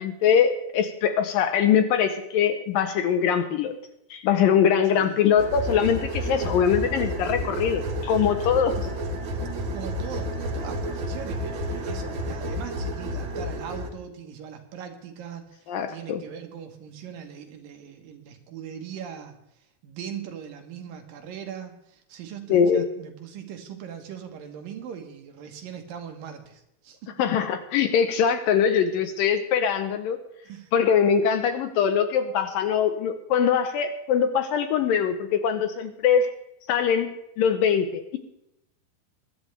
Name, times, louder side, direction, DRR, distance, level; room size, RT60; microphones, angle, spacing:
voice 1, 0.0-3.7 4.1-8.8 15.7-16.2 22.5-22.9 27.2-30.2 30.7-36.3 36.7-37.1 37.4-38.2, left 7 dB, 75° left, 8 dB, 2.3 m, -22 dB
sound 1, 5.4-13.9, equal, 85° right, 1.0 m, -30 dB
voice 2, 9.7-19.4 19.8-27.2 30.4-30.7, right 8 dB, 65° right, 5 dB, 2.8 m, -40 dB
22.0 x 11.5 x 3.3 m, 0.82 s
omnidirectional pair, 4.5 m